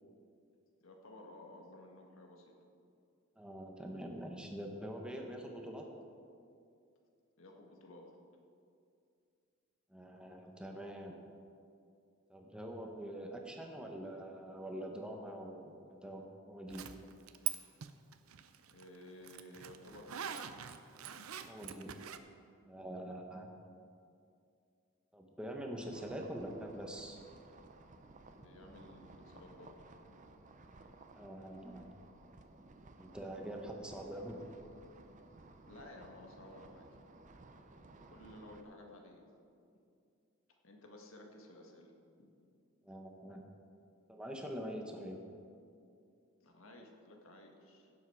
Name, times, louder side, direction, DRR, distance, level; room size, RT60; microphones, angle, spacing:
voice 1, 0.8-2.5 7.4-8.2 18.7-20.5 28.3-30.2 35.6-37.0 38.1-39.3 40.6-41.9 42.2-42.3 46.4-47.9, left 1 dB, 70° left, 2 dB, 1.6 m, -55 dB
voice 2, 3.4-5.9 9.9-11.1 12.3-16.8 21.5-21.9 22.7-23.5 25.1-27.2 31.1-31.9 33.0-34.4 42.8-43.4 44.1-45.2, right 1 dB, 5° right, 1 dB, 1.2 m, -44 dB
Zipper (clothing), 16.7-17.6 17.8-22.2, right 10 dB, 85° right, 0.6 m, -43 dB
sound 1, 25.8-38.6, right 2 dB, 35° right, 0.7 m, -57 dB
16.5 x 7.5 x 4.8 m, 2.5 s
head